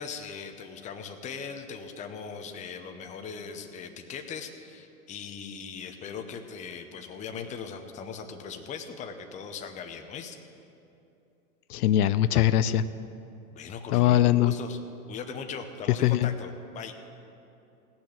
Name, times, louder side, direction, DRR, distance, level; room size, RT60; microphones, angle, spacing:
voice 1, 0.0-10.4 13.5-14.8 15.1-16.9, left 6 dB, 15° left, 5 dB, 0.7 m, -39 dB
voice 2, 11.7-12.8 13.9-14.5 16.0-16.3, left 12 dB, 75° left, 14 dB, 0.6 m, -21 dB
16.5 x 6.4 x 8.6 m, 2.8 s
hypercardioid pair, 135°, 46 cm